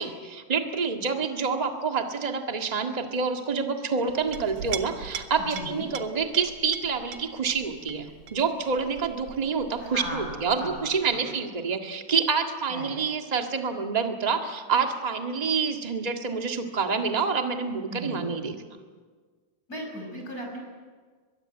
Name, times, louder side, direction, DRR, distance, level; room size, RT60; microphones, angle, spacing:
voice 1, 0.0-18.8, right 5 dB, 25° right, 4 dB, 0.8 m, -27 dB
Chink clink, 4.1-11.2, right 7 dB, 60° right, 2.2 m, -41 dB
voice 2, 5.4-5.9 9.8-10.8 11.1-11.3 12.7-13.0 17.9-18.3 19.7-20.6, equal, 25° left, 0 dB, 6.3 m, -37 dB
23.0 x 22.5 x 7.9 m, 1.5 s
omnidirectional pair, 3.8 m